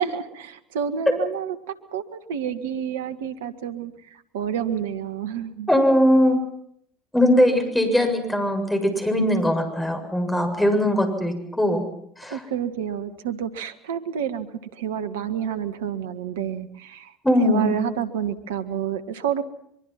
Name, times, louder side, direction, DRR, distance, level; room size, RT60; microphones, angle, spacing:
voice 1, 0.0-5.7 12.3-14.5 14.7-17.1 17.4-19.4, right 8 dB, 80° right, 11 dB, 1.7 m, -29 dB
voice 2, 5.7-6.4 7.1-11.8 12.2-12.4 17.2-17.7, left 1 dB, 10° left, 6 dB, 7.2 m, -20 dB
24.0 x 23.5 x 5.9 m, 0.71 s
hypercardioid pair, 70°, 0 cm